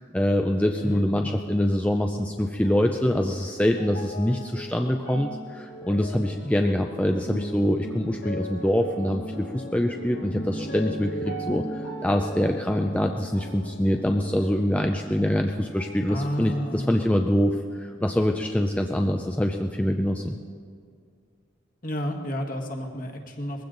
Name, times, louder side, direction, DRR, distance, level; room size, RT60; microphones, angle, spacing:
voice 1, 0.0-20.4, left 1 dB, 5° left, 3 dB, 0.5 m, -25 dB
voice 2, 0.8-1.4 16.1-17.3 21.8-23.7, equal, 45° left, 2 dB, 1.5 m, -31 dB
sound 1, 2.6-16.1 16.4-17.3 18.0-18.1, right 1 dB, 80° left, 1.6 m, -38 dB
20.5 x 15.5 x 3.9 m, 2.1 s
head